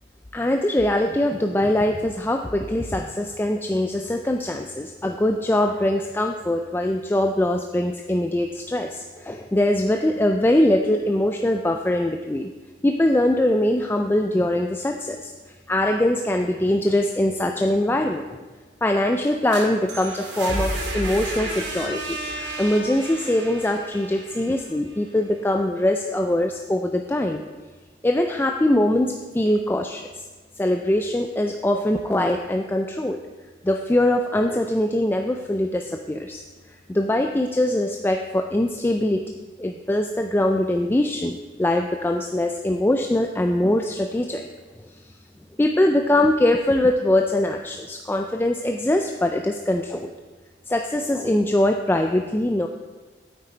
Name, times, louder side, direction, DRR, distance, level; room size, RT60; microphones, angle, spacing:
voice 1, 0.3-12.5 12.8-15.3 15.7-18.4 18.8-27.4 28.0-30.2 30.6-33.2 33.6-36.4 36.9-44.5 45.6-50.1 50.7-52.7, left 1 dB, 10° left, 4 dB, 0.3 m, -22 dB
sound 1, 19.2-25.1, right 1 dB, 70° right, 2.2 m, -32 dB
8.9 x 8.9 x 4.3 m, 1.3 s
head